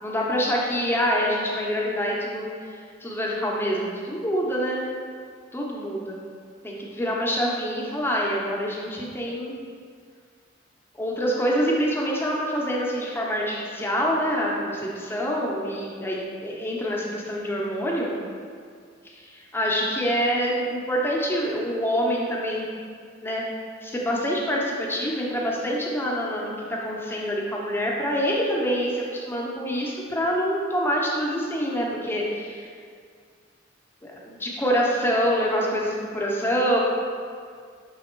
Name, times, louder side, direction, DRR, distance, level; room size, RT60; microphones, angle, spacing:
voice 1, 0.0-2.5 3.0-4.8 5.5-6.2 6.6-9.6 11.0-18.1 19.5-22.6 23.2-23.5 23.8-26.5 26.8-32.7 34.0-36.8, equal, 10° left, -3 dB, 0.8 m, -26 dB
6.3 x 3.4 x 4.5 m, 2.1 s
head